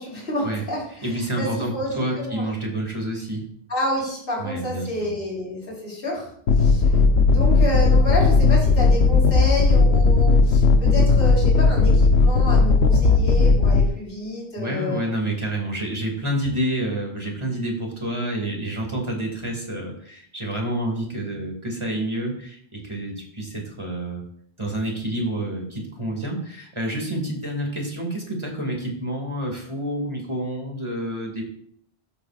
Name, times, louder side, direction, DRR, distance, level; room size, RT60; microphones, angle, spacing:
voice 1, 0.0-2.4 3.7-6.3 6.6-7.0 7.3-15.0, left 1 dB, 60° left, -8 dB, 4.2 m, -29 dB
voice 2, 1.0-3.5 4.4-5.1 14.6-24.2 24.6-31.4, right 1 dB, 25° right, 0 dB, 2.4 m, -28 dB
sound 1, 6.5-13.9, left 4 dB, 90° left, 1.2 m, -16 dB
13.5 x 7.7 x 2.5 m, 0.63 s
omnidirectional pair, 1.1 m